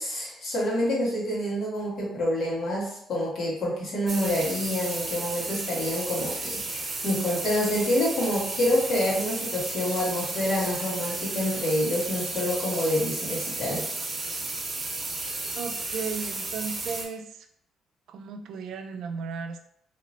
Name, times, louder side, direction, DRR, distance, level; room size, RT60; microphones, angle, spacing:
voice 1, 0.0-13.8, left 1 dB, 75° left, -5 dB, 1.4 m, -27 dB
sound 1, 4.1-17.0, right 2 dB, 35° right, 0.8 m, -33 dB
voice 2, 15.5-17.4 18.1-19.6, right 5 dB, 80° right, 7 dB, 0.3 m, -35 dB
3.0 x 2.8 x 2.8 m, 0.69 s
cardioid pair, 90°, 0 cm